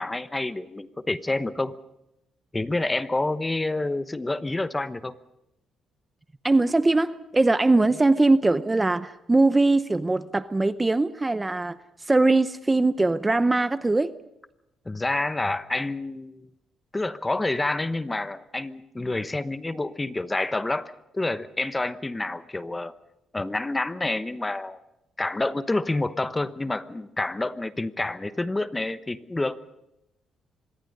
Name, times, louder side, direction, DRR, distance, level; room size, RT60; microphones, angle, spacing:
voice 1, 0.0-1.8 2.5-5.2 14.9-16.5 16.9-22.9 23.3-24.8 25.2-29.6, left 2 dB, 15° left, 13 dB, 1.0 m, -28 dB
voice 2, 6.4-11.8 12.0-14.1, right 2 dB, 20° right, 13 dB, 0.7 m, -21 dB
25.5 x 21.0 x 5.5 m, 0.88 s
cardioid pair, 90°, 0 cm